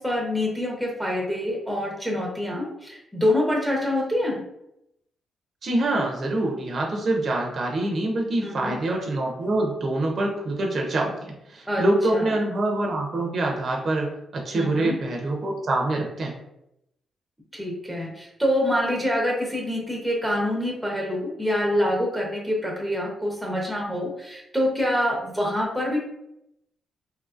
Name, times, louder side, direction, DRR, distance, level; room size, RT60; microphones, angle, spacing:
voice 1, 0.0-4.4 8.4-8.8 11.7-11.8 12.1-12.3 14.5-15.0 17.5-26.0, left 1 dB, ahead, -2 dB, 0.7 m, -26 dB
voice 2, 5.6-11.1 11.5-16.4, right 2 dB, 45° right, 0 dB, 0.5 m, -25 dB
2.7 x 2.5 x 2.4 m, 0.82 s
cardioid pair, 115°, 0 cm